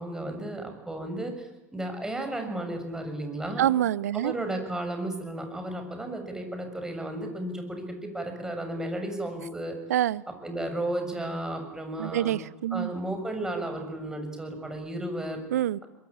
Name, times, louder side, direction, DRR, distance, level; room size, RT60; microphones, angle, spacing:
voice 1, 0.0-3.7 4.1-9.7 10.3-12.3 12.7-15.4, right 1 dB, 5° right, 5 dB, 6.7 m, -33 dB
voice 2, 3.6-4.3 9.9-10.2 12.0-12.9 15.5-15.8, right 12 dB, 70° right, 21 dB, 0.8 m, -26 dB
24.0 x 22.0 x 8.8 m, 1.1 s
figure-of-eight pair, 90°, 9 cm